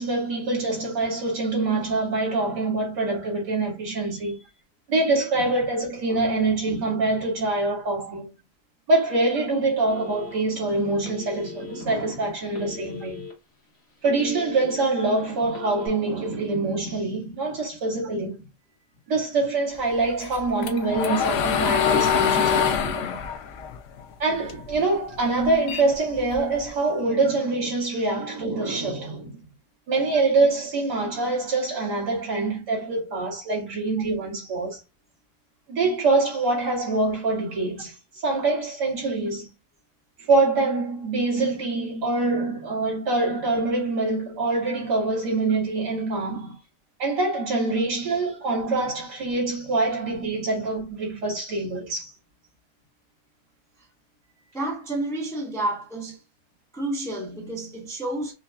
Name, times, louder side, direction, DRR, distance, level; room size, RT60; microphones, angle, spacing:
voice 1, 0.0-4.4 4.9-8.3 8.9-13.2 14.0-18.4 19.1-23.1 24.2-29.4 29.9-34.8 35.7-39.5 40.2-46.5 47.0-52.1, right 3 dB, 85° right, 2.6 m, -25 dB
Telephone, 9.9-10.6 11.0-11.8 12.5-13.3 13.7-14.8 15.5-15.9, left 5 dB, 45° left, 1.6 m, -39 dB
sound 1, 20.2-24.7 25.1-26.7, left 8 dB, 70° left, 0.7 m, -24 dB
voice 2, 54.5-56.2 56.7-58.3, right 1 dB, ahead, 0.7 m, -30 dB
5.1 x 2.4 x 2.3 m
omnidirectional pair, 1.8 m